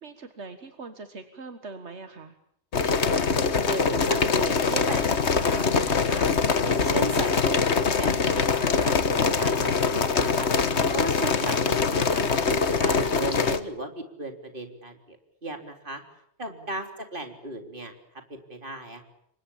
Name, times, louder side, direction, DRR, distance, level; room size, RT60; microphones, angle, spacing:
voice 1, 0.0-2.4 16.5-16.6, right 3 dB, 80° right, 8 dB, 1.9 m, -42 dB
sound 1, 2.7-13.6, left 5 dB, 80° left, 1.7 m, -23 dB
voice 2, 3.7-6.3 6.6-10.5 10.9-16.0 16.4-17.9 18.3-19.0, right 2 dB, 50° right, 5 dB, 3.7 m, -36 dB
29.0 x 24.5 x 7.2 m, 0.74 s
omnidirectional pair, 1.1 m